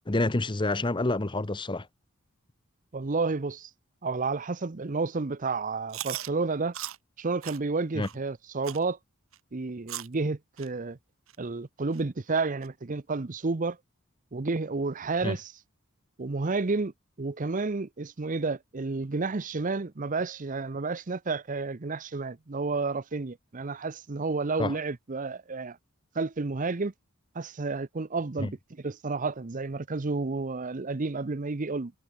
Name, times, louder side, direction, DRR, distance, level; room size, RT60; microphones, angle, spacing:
voice 1, 0.1-1.9 7.9-8.1 15.2-15.4 24.6-24.8 28.4-28.5, left 2 dB, 25° left, 0.9 m, -28 dB
voice 2, 2.9-3.7 4.0-6.7 7.2-9.0 9.5-11.0 11.4-13.8 14.3-15.5 16.2-16.9 17.2-25.8 26.1-26.9 27.3-31.9, right 3 dB, 40° right, 0.7 m, -31 dB
Chewing mastication, 5.9-6.3 6.7-7.0 7.4-7.6 8.0-8.2 8.6-8.8 9.3-9.4 9.9-10.1 10.6-10.7 11.3-11.4 11.9-12.0 12.6-12.7, right 13 dB, 70° right, 1.0 m, -37 dB
head